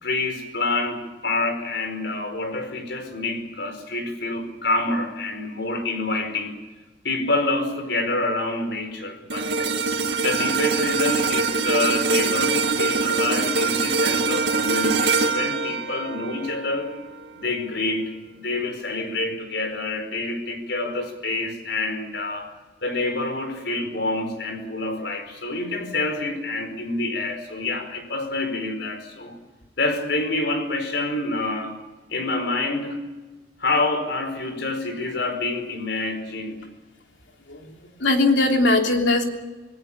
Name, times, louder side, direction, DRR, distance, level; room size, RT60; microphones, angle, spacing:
voice 1, 0.0-6.6 7.0-9.7 10.2-16.9 17.4-22.5 22.8-29.4 29.8-31.8 32.1-33.0 33.6-36.7, left 2 dB, 65° left, 6 dB, 4.8 m, -27 dB
sound 1, 9.3-17.7 18.1-18.3, right 4 dB, 65° right, 2.4 m, -24 dB
voice 2, 37.5-39.3, left 2 dB, 80° left, 3 dB, 3.3 m, -20 dB
26.5 x 19.0 x 7.2 m, 1.2 s
head